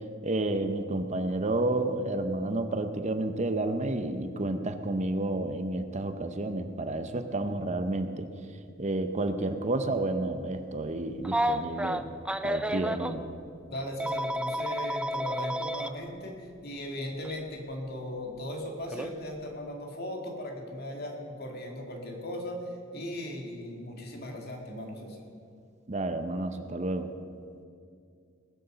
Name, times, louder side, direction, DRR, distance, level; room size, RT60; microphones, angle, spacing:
voice 1, 0.2-8.3 8.8-12.1 12.4-13.2 25.9-27.1, right 2 dB, 35° right, 8 dB, 0.7 m, -30 dB
Telephone, 11.2-13.1 14.0-15.9 17.2-17.4 18.9-19.1, equal, 5° right, 0.4 m, -31 dB
voice 2, 13.7-25.2, left 1 dB, 55° left, 1 dB, 2.1 m, -38 dB
19.5 x 6.8 x 6.8 m, 2.3 s
head